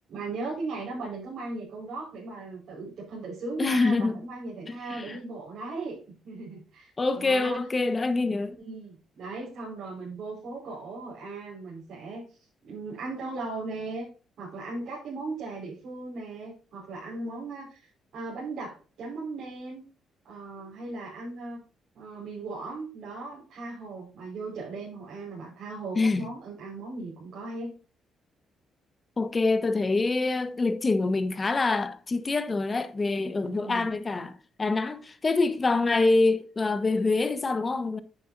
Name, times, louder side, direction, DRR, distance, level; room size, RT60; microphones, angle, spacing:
voice 1, 0.1-7.6 8.6-12.4 12.7-14.1 14.4-19.8 20.2-21.6 21.9-27.8 33.4-33.9, right 3 dB, 70° right, 5.3 m, -38 dB
voice 2, 3.6-4.2 4.9-5.2 7.0-8.6 25.9-26.3 29.2-38.0, left 3 dB, 30° left, 1.4 m, -25 dB
10.5 x 8.7 x 2.8 m
cardioid pair, 90°, 0 cm